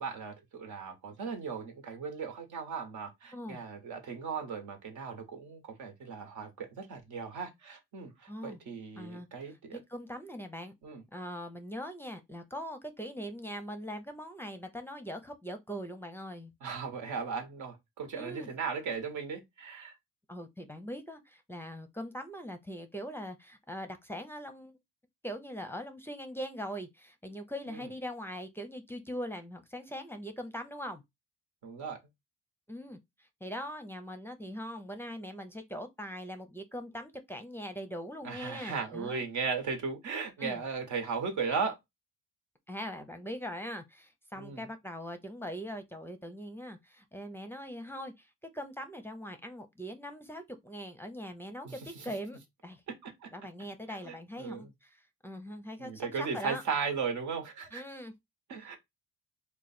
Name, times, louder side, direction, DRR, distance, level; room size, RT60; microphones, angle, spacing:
voice 1, 0.0-9.8 10.8-11.0 16.6-20.0 27.7-27.9 31.6-32.0 38.2-41.8 44.3-44.7 51.6-52.2 52.9-53.3 53.9-54.7 55.8-57.8 58.5-58.8, right 5 dB, 75° right, 1.1 m, -37 dB
voice 2, 8.3-8.6 9.0-9.3 9.7-10.7 11.1-16.5 18.2-18.5 20.3-24.7 25.2-31.0 32.7-33.0 33.4-39.2 40.4-40.6 42.7-48.3 48.5-51.7 52.0-52.8 53.3-54.7 55.2-56.6 57.7-58.1, equal, 10° left, 0.5 m, -41 dB
3.0 x 2.2 x 4.2 m
cardioid pair, 90°, 30 cm